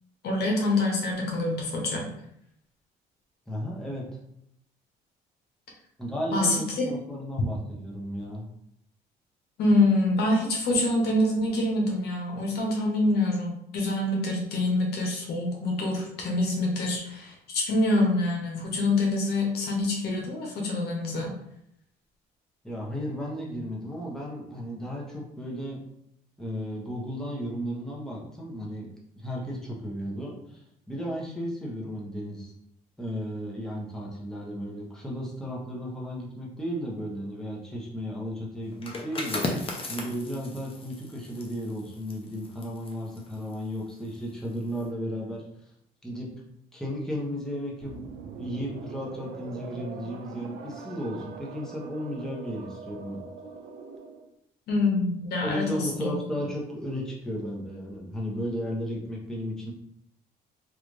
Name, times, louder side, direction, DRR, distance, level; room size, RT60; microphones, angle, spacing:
voice 1, 0.2-2.1 6.3-7.0 9.6-21.3 54.7-56.1, left 2 dB, 70° left, 0 dB, 1.0 m, -26 dB
voice 2, 3.5-4.0 6.0-8.5 22.6-25.8 26.4-28.9 29.2-32.5 33.0-39.4 39.9-45.4 46.0-46.3 46.7-48.0 48.3-53.2 55.4-59.7, equal, 5° left, -4 dB, 0.9 m, -34 dB
sound 1, 38.7-44.2 44.6-44.8, left 2 dB, 35° left, 0.7 m, -36 dB
sound 2, 47.8-54.3, right 5 dB, 75° right, 0.4 m, -42 dB
3.2 x 2.5 x 3.1 m, 0.76 s
cardioid pair, 110°, 17 cm